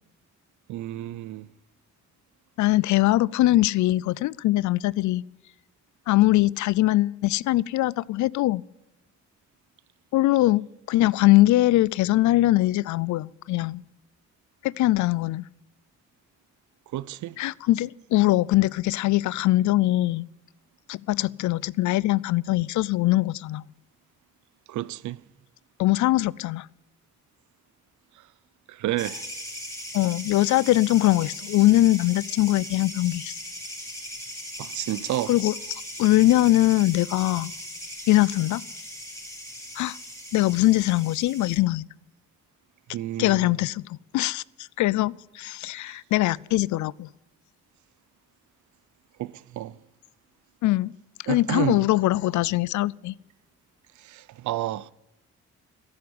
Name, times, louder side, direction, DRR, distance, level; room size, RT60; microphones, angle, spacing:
voice 1, 0.7-1.5 16.9-17.4 24.7-25.2 28.7-29.2 34.6-35.3 42.9-43.5 49.2-49.8 51.3-51.9 54.0-54.9, right 14 dB, 75° right, 0.6 m, -30 dB
voice 2, 2.6-5.2 6.1-8.6 10.1-10.6 10.9-13.8 14.6-15.4 17.4-20.3 20.9-23.6 25.8-26.7 29.9-33.3 35.3-37.5 38.1-38.6 39.8-40.0 40.3-41.8 43.2-44.4 44.8-47.1 50.6-50.9 51.3-53.1, left 17 dB, 75° left, 0.5 m, -22 dB
sound 1, 29.0-41.6, equal, 10° left, 5.2 m, -39 dB
14.0 x 11.5 x 8.6 m
cardioid pair, 90°, 30 cm